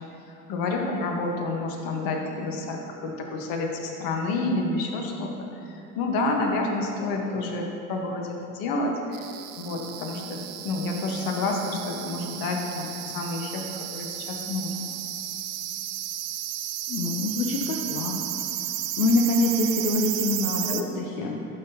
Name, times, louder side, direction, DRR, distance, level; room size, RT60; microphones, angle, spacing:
voice 1, 0.0-9.3 9.6-10.4 10.6-14.9 20.7-21.3, left 2 dB, 55° left, 1 dB, 1.2 m, -29 dB
sound 1, 9.1-20.8, right 12 dB, 75° right, 0.6 m, -33 dB
voice 2, 16.9-18.3 18.6-18.7 19.0-21.5, left 2 dB, 80° left, 0 dB, 0.7 m, -25 dB
11.0 x 5.9 x 2.8 m, 2.9 s
hypercardioid pair, 65°, 41 cm